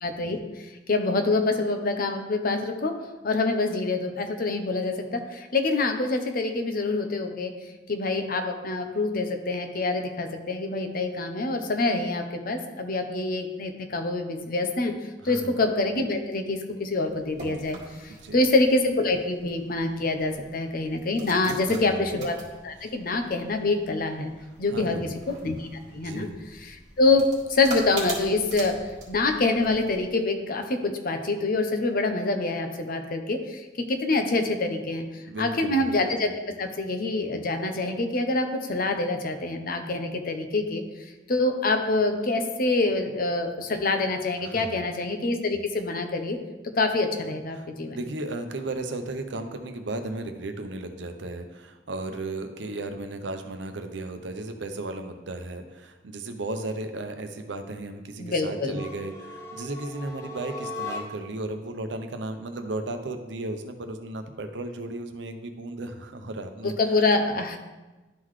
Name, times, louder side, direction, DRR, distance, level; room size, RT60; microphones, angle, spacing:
voice 1, 0.0-2.9 3.2-7.5 7.9-14.9 15.2-22.3 22.6-24.3 24.6-25.7 25.9-26.3 26.6-28.7 29.1-36.3 36.6-40.8 41.3-46.4 46.8-48.0 58.2-58.8 66.8-67.6, left 2 dB, 55° left, 5 dB, 0.7 m, -26 dB
voice 2, 15.2-15.6 18.1-18.4 21.4-22.1 22.8-22.9 24.7-25.1 25.9-26.5 35.2-35.9 44.4-44.8 47.5-66.7, right 2 dB, 85° right, 7 dB, 0.7 m, -35 dB
sound 1, 17.0-30.1, right 3 dB, 45° right, 1.7 m, -43 dB
sound 2, 58.7-61.4, left 2 dB, 15° left, 0.8 m, -38 dB
11.5 x 3.9 x 3.2 m, 1.2 s
head